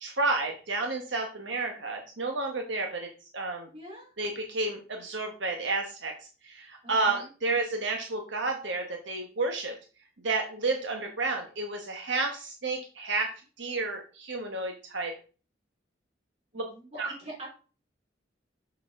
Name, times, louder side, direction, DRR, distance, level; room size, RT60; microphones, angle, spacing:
voice 1, 0.0-3.1 3.3-3.7 4.2-6.1 6.4-9.7 10.2-13.3 13.6-15.1 16.5-16.6 17.0-17.1, right 3 dB, 80° right, 3 dB, 1.2 m, -31 dB
voice 2, 3.7-4.1 6.8-7.3 16.5-17.5, right 1 dB, 35° right, -3 dB, 3.5 m, -43 dB
6.7 x 6.5 x 3.7 m, 0.36 s
head